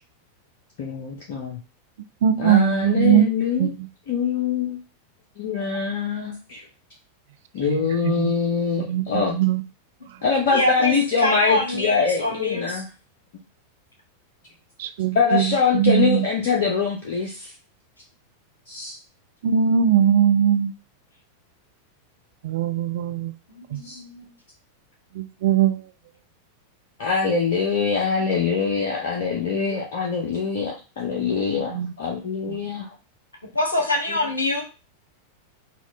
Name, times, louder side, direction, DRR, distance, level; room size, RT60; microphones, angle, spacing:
voice 1, 0.8-1.6 2.4-3.7 4.1-4.8 5.4-6.7 7.5-9.4 10.2-12.8 15.1-17.5 18.7-19.0 23.8-24.0 27.0-32.9, left 5 dB, 55° left, -2 dB, 0.7 m, -24 dB
voice 2, 2.2-3.3 3.6-3.9 7.7-8.3 8.8-9.6 14.8-15.5 15.7-16.3 19.4-20.7 22.4-23.3 23.7-23.8 25.1-25.8 31.6-31.9 32.5-32.6, right 9 dB, 55° right, 9 dB, 0.3 m, -21 dB
voice 3, 10.5-12.8 23.5-24.4 33.5-34.6, left 1 dB, 75° left, 2 dB, 1.0 m, -25 dB
4.3 x 2.3 x 2.6 m, 0.32 s
figure-of-eight pair, 90°, 0 cm